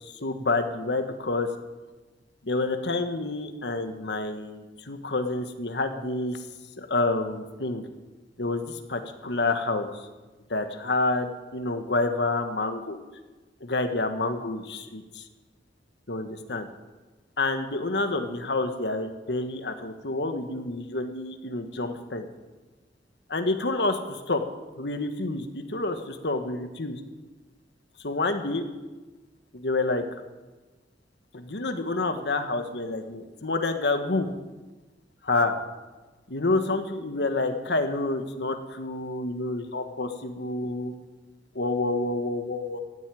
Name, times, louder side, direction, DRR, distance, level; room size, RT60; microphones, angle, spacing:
voice 1, 0.2-1.5 2.4-6.4 6.8-7.8 8.4-9.9 10.5-13.0 13.6-15.2 16.1-16.7 17.4-22.3 23.3-24.0 24.3-24.4 24.8-27.0 28.0-28.6 29.5-30.0 31.3-34.3 35.2-35.6 36.3-40.9 41.5-42.8, left 2 dB, 70° left, 7 dB, 1.4 m, -28 dB
15.5 x 8.2 x 9.2 m, 1.2 s
head